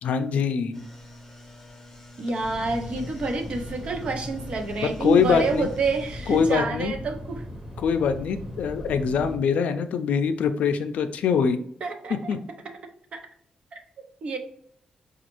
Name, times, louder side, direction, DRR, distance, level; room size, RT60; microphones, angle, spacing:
voice 1, 0.0-0.9 5.0-5.7 6.3-6.9 7.8-11.6 12.1-12.4, left 6 dB, 85° left, 8 dB, 0.4 m, -23 dB
sound 1, 0.7-6.6, left 1 dB, 15° left, 0.7 m, -46 dB
voice 2, 2.2-7.4 11.8-12.2 13.1-13.2 13.7-14.4, right 3 dB, 50° right, 5 dB, 0.6 m, -28 dB
sound 2, 2.4-9.4, left 1 dB, 20° right, 0.9 m, -38 dB
5.0 x 2.3 x 3.0 m, 0.65 s
wide cardioid pair, 140°, 2 cm